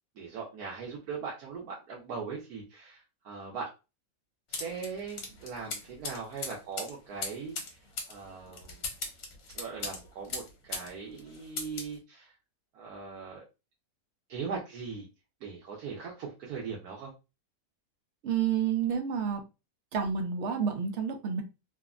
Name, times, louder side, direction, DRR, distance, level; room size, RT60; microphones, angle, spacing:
voice 1, 0.2-3.7 4.5-7.8 8.1-8.8 9.5-12.3 12.7-13.4 14.3-15.1 15.4-17.1, right 5 dB, 85° right, 1.2 m, -40 dB
sound 1, 4.5-10.9 11.2-11.9, left 4 dB, 70° left, 1.2 m, -39 dB
voice 2, 18.2-19.4 19.9-21.4, right 7 dB, 65° right, 0.8 m, -29 dB
3.4 x 2.0 x 2.3 m
omnidirectional pair, 1.6 m